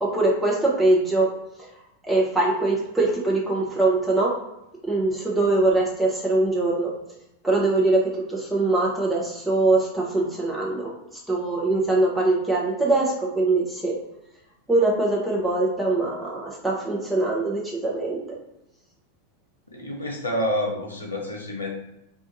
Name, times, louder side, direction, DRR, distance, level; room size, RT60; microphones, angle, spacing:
voice 1, 0.0-1.3 2.1-4.3 4.8-6.9 7.4-13.9 14.7-18.2, right 2 dB, 5° right, -4 dB, 0.8 m, -22 dB
voice 2, 19.7-21.7, left 1 dB, 80° left, 0 dB, 0.7 m, -28 dB
2.5 x 2.4 x 3.9 m, 0.88 s
figure-of-eight pair, 90°, 0 cm